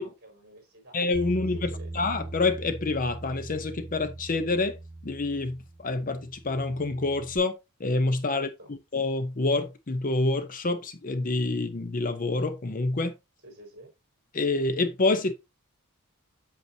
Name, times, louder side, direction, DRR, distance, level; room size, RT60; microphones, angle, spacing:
voice 1, 0.0-1.0 1.3-1.9 8.3-8.7 13.4-13.9, right 1 dB, 50° right, 4.5 m, -50 dB
voice 2, 0.9-4.8 5.0-8.5 8.9-13.1 14.3-15.3, left 3 dB, 40° left, 0.7 m, -27 dB
Bass guitar, 1.1-7.4, right 2 dB, 15° left, 5.3 m, -40 dB
8.1 x 6.8 x 2.8 m
head